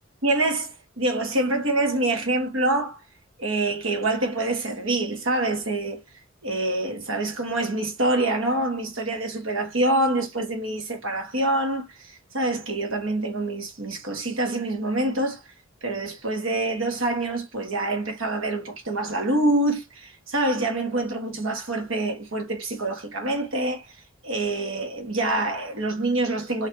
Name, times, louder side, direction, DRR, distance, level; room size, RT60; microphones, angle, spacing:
voice 1, 0.2-3.0 3.4-6.0 6.4-15.4 15.8-23.9 24.2-26.7, right 2 dB, 80° right, 1.6 m, -26 dB
4.0 x 3.2 x 2.9 m
head